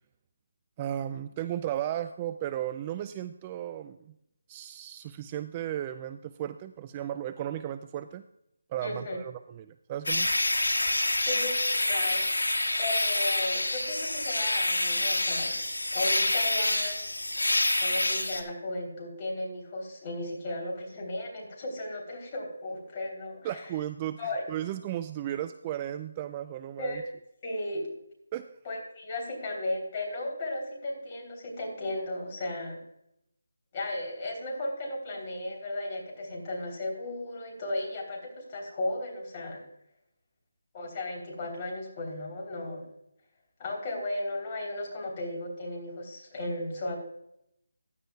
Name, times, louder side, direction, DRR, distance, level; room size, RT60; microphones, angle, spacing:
voice 1, 0.8-4.1 4.5-8.2 8.7-10.3 23.4-24.2 24.5-27.0 28.3-28.6, right 11 dB, 20° right, 11 dB, 0.3 m, -35 dB
voice 2, 8.8-9.2 10.8-12.3 12.8-15.6 15.9-17.0 17.8-23.7 24.2-24.4 26.8-27.0 27.4-27.9 28.6-32.8 33.7-39.6 40.7-42.9 43.6-47.0, left 1 dB, 25° left, 0 dB, 3.4 m, -35 dB
sound 1, 10.1-18.4, left 1 dB, 90° left, 1.7 m, -27 dB
15.0 x 11.0 x 2.3 m, 0.78 s
figure-of-eight pair, 160°, 0 cm